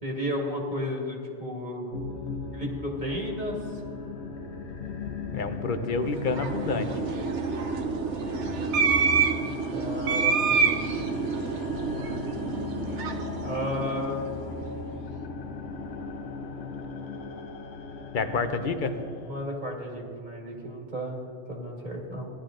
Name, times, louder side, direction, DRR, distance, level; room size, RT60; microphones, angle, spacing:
voice 1, 0.0-1.9 2.5-3.8 9.7-10.6 13.4-14.3 19.2-22.3, left 1 dB, 40° right, -1 dB, 1.8 m, -33 dB
sound 1, 1.9-19.4, left 4 dB, 70° left, 1.1 m, -38 dB
voice 2, 5.3-6.9 18.1-18.9, left 4 dB, 50° left, 8 dB, 0.8 m, -28 dB
sound 2, 6.0-14.5, right 5 dB, 75° right, 1.1 m, -28 dB
15.5 x 11.0 x 3.8 m, 2.7 s
omnidirectional pair, 1.2 m